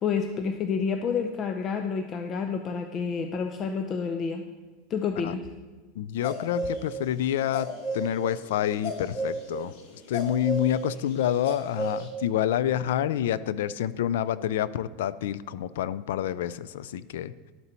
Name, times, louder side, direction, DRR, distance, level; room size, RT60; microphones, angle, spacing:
voice 1, 0.0-4.5 4.9-5.5, left 6 dB, 30° left, 5 dB, 0.6 m, -29 dB
voice 2, 6.0-9.7 10.1-17.3, left 11 dB, 80° left, 17 dB, 0.4 m, -28 dB
sound 1, 6.2-6.8 7.1-7.2 7.4-12.1, equal, 65° left, 2.2 m, -32 dB
12.0 x 6.8 x 4.4 m, 1.3 s
supercardioid pair, 145°, 0 cm